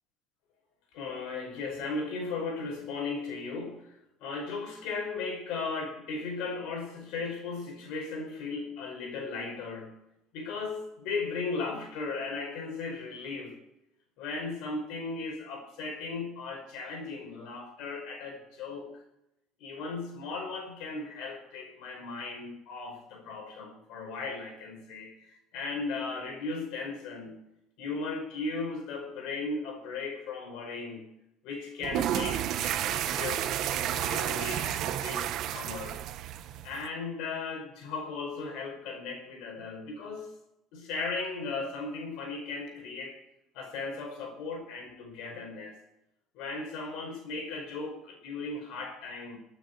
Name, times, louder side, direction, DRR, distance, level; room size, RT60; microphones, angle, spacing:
voice 1, 0.9-10.0 10.3-13.5 14.2-19.0 19.6-27.4 27.8-31.1 31.4-36.0 36.6-40.3 40.7-43.2 43.5-45.8 46.3-49.4, left 4 dB, 75° left, 3 dB, 5.3 m, -37 dB
sound 1, 31.8-36.9, right 11 dB, 65° right, 0.9 m, -31 dB
26.0 x 9.0 x 4.7 m, 0.87 s
supercardioid pair, 100°, 0 cm